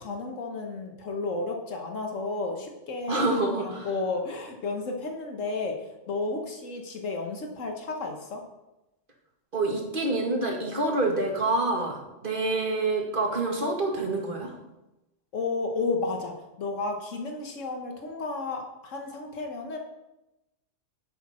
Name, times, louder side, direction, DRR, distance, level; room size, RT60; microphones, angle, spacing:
voice 1, 0.0-3.3 3.6-8.4 15.3-19.8, left 3 dB, 85° left, 2 dB, 1.5 m, -32 dB
voice 2, 3.1-3.9 9.5-14.5, right 2 dB, 45° right, 0 dB, 2.1 m, -27 dB
11.0 x 8.0 x 4.3 m, 0.96 s
omnidirectional pair, 1.3 m